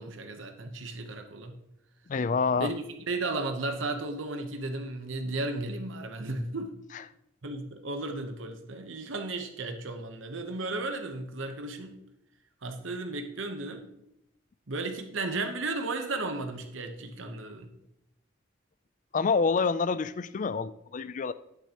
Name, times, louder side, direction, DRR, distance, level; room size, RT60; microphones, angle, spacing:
voice 1, 0.0-1.5 2.6-6.7 7.4-12.0 12.6-13.9 14.7-17.7, right 2 dB, 70° right, 1.0 m, -34 dB
voice 2, 2.1-2.7 6.9-7.0 19.1-21.3, left 5 dB, 40° left, 0.3 m, -27 dB
11.5 x 9.4 x 2.9 m
head